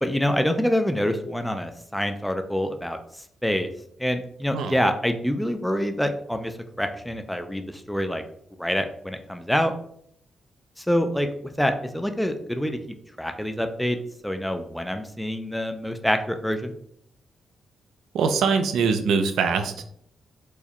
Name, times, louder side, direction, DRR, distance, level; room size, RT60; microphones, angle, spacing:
voice 1, 0.0-3.0 3.4-3.7 4.0-8.2 8.6-9.7 10.8-11.3 11.6-14.0 14.2-16.7, equal, 5° left, 6 dB, 0.3 m, -26 dB
voice 2, 18.1-19.8, right 5 dB, 90° right, 7 dB, 0.4 m, -23 dB
4.6 x 2.1 x 2.8 m, 0.68 s
cardioid pair, 110°, 0 cm